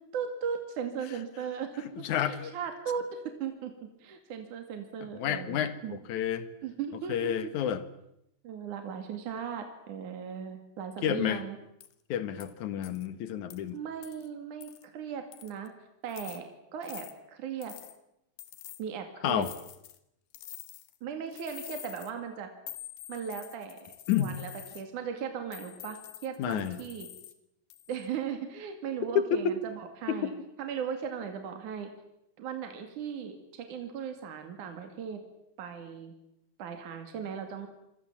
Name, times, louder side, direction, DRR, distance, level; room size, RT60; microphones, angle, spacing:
voice 1, 0.1-1.8 2.2-6.0 6.6-7.3 8.4-11.6 13.7-15.7 16.0-17.7 18.8-19.5 21.0-22.5 23.1-27.1 27.9-30.3 30.6-31.9 32.4-35.2 35.6-36.1 36.6-37.7, right 7 dB, 60° right, 5 dB, 3.7 m, -37 dB
voice 2, 2.0-2.5 5.1-6.5 7.1-7.8 11.0-11.4 12.1-13.8 19.2-19.5 24.1-24.4 26.4-26.8 29.2-29.6 30.1-30.3, left 9 dB, 60° left, 12 dB, 2.7 m, -30 dB
sound 1, 11.8-11.9 12.4-12.5 12.8-13.1 13.5-13.6 14.0-14.3 14.6-14.9 15.3-15.7 16.1-16.4 16.8-17.1 17.6-18.0 18.4-18.8 19.4-20.0 20.3-21.0 21.3-22.1 22.7-24.8 25.5-27.3 27.7-28.1, left 13 dB, 85° left, 3.3 m, -47 dB
27.0 x 23.5 x 7.5 m, 0.83 s
omnidirectional pair, 4.2 m